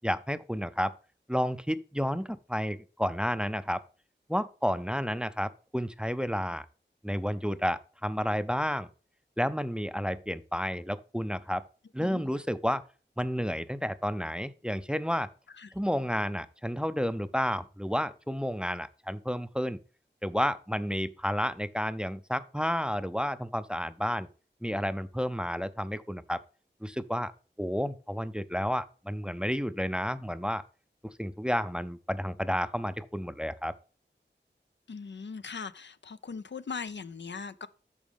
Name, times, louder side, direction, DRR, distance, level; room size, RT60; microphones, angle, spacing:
voice 1, 0.0-0.9 1.3-3.8 4.3-6.7 7.0-8.9 9.4-11.6 11.9-12.8 13.2-15.3 15.7-19.8 20.2-24.3 24.6-26.4 26.8-27.3 27.6-30.6 31.2-33.7, equal, 5° right, 0.5 m, -31 dB
voice 2, 34.9-37.7, left 5 dB, 70° left, 0.5 m, -40 dB
8.8 x 6.2 x 3.5 m
wide cardioid pair, 55°, 19 cm